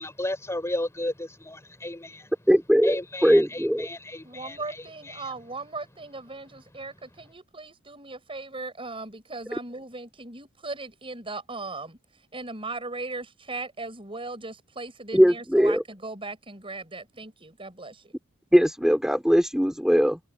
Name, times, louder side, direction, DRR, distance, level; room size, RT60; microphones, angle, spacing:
voice 1, 0.0-2.3 2.8-5.3, left 1 dB, 15° left, 4.1 m, -34 dB
voice 2, 2.5-3.9 15.1-15.8 18.5-20.2, equal, 5° right, 4.4 m, -20 dB
voice 3, 4.2-12.0 12.3-18.1, right 3 dB, 25° right, 7.1 m, -38 dB
head